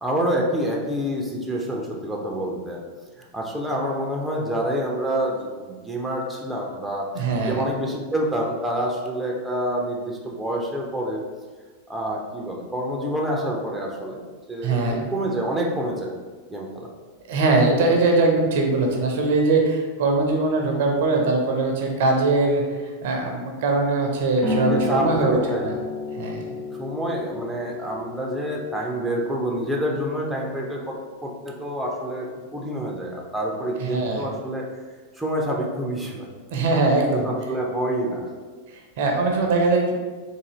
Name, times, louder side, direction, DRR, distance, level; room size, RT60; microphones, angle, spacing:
voice 1, 0.0-2.8 3.3-11.2 11.9-16.1 16.5-16.9 24.7-25.7 26.8-31.0 31.2-34.7 35.2-36.3 37.1-38.3, right 1 dB, 5° right, -1 dB, 0.5 m, -27 dB
voice 2, 7.1-7.6 14.6-15.1 17.3-25.7 26.1-26.6 33.8-34.3 36.5-37.3 38.7-39.9, right 3 dB, 55° right, 1 dB, 0.6 m, -21 dB
sound 1, 24.4-31.6, left 2 dB, 20° left, 0.9 m, -32 dB
3.7 x 2.6 x 3.0 m, 1.4 s
figure-of-eight pair, 90°, 0 cm